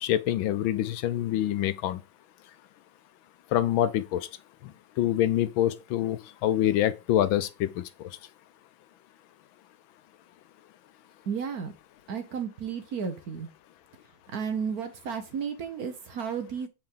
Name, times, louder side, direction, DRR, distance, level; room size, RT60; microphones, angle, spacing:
voice 1, 0.0-2.0 3.5-4.3 4.6-4.7 5.0-8.1, left 12 dB, 80° left, 1.4 m, -26 dB
voice 2, 11.3-11.7 12.1-13.5 14.3-16.7, right 6 dB, 55° right, 1.4 m, -33 dB
7.7 x 4.3 x 3.8 m
omnidirectional pair, 2.2 m